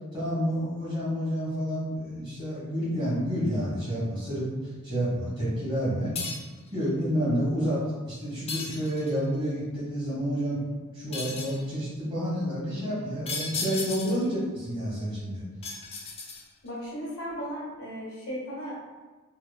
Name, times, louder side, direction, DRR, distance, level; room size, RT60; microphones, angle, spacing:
voice 1, 0.1-4.4 4.8-6.1 6.7-15.4, equal, 20° right, -12 dB, 1.5 m, -29 dB
sound 1, 6.2-6.6 8.5-9.2 11.1-11.7 13.3-14.3 15.6-16.7, left 4 dB, 30° left, 0.3 m, -35 dB
voice 2, 16.6-18.7, equal, 80° left, -8 dB, 1.3 m, -36 dB
2.9 x 2.2 x 2.2 m, 1.3 s
head